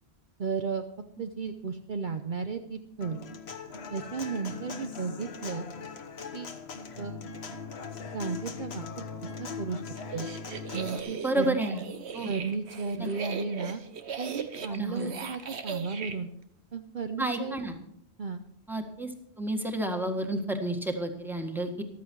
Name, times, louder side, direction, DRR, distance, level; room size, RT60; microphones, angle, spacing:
voice 1, 0.4-0.8 1.2-3.2 3.9-5.7 6.3-6.5 7.0-7.2 8.1-8.9 9.2-9.8 10.1-10.3 10.7-11.6 12.2-13.8 14.2-16.3 16.7-17.6 18.2-18.4, right 5 dB, 50° right, 6 dB, 0.9 m, -34 dB
Human voice / Acoustic guitar, 3.0-11.0, left 5 dB, 70° left, 1.4 m, -40 dB
sound 1, 10.0-16.2, right 6 dB, 75° right, 1.3 m, -38 dB
voice 2, 11.2-11.8 12.1-12.3 13.0-13.1 14.7-15.1 17.2-17.7 18.7-19.1 19.4-21.8, right 1 dB, ahead, 4 dB, 1.7 m, -30 dB
14.5 x 13.0 x 4.6 m, 0.72 s
omnidirectional pair, 1.1 m